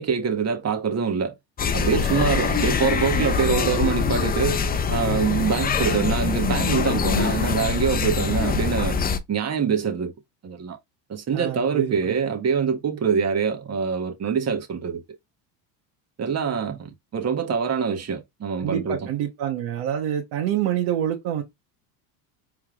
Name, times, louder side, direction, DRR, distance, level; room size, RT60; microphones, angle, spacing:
voice 1, 0.0-1.3 1.7-4.6 4.9-9.0 9.3-10.1 10.4-10.8 11.1-15.0 16.2-19.1, right 6 dB, 30° right, 1.4 m, -24 dB
sound 1, 1.6-9.2, left 6 dB, 20° left, 0.5 m, -24 dB
voice 2, 11.3-12.2 18.6-21.4, right 10 dB, 60° right, 1.4 m, -27 dB
4.4 x 3.6 x 2.4 m
supercardioid pair, 100°, 50 cm